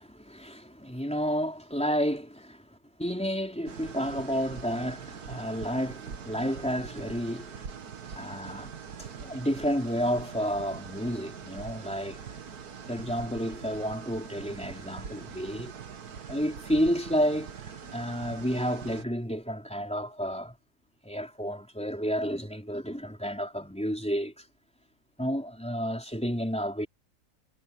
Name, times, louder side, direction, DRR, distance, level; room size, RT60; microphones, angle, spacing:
voice 1, 0.0-2.6 3.0-7.5 8.1-8.7 9.2-12.2 12.9-15.7 16.3-17.5 17.9-20.5 21.0-24.3 25.2-26.9, equal, 5° left, 3.9 m, -31 dB
sound 1, 3.7-19.0, right 6 dB, 80° right, 2.0 m, -43 dB
omnidirectional pair, 1.6 m